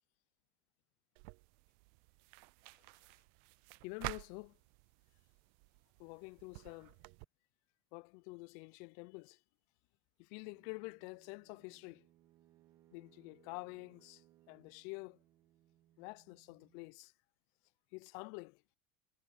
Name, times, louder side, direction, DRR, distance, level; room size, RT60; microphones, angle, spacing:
sound 1, 1.2-7.2, right 28 dB, 65° right, 0.4 m, -51 dB
voice 1, 3.8-4.6 6.0-6.9 7.9-9.4 10.2-12.1 12.9-14.2 14.5-15.2 16.0-17.1 17.9-18.6, left 28 dB, 60° left, 0.5 m, -48 dB
sound 2, 10.4-17.0, right 14 dB, 45° right, 1.8 m, -69 dB
supercardioid pair, 145°, 6 cm